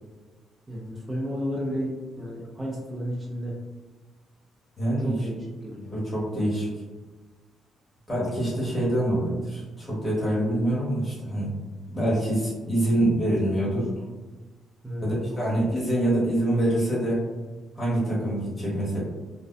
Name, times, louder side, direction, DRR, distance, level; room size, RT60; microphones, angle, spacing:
voice 1, 0.7-3.6 5.0-6.0 14.8-15.8, equal, 15° right, -5 dB, 0.6 m, -33 dB
voice 2, 4.8-5.1 5.9-6.7 8.1-11.6 11.9-13.9 15.0-17.2 17.8-19.0, right 1 dB, 15° left, -8 dB, 1.3 m, -25 dB
2.6 x 2.2 x 2.2 m, 1.2 s
cardioid pair, 90°, 0 cm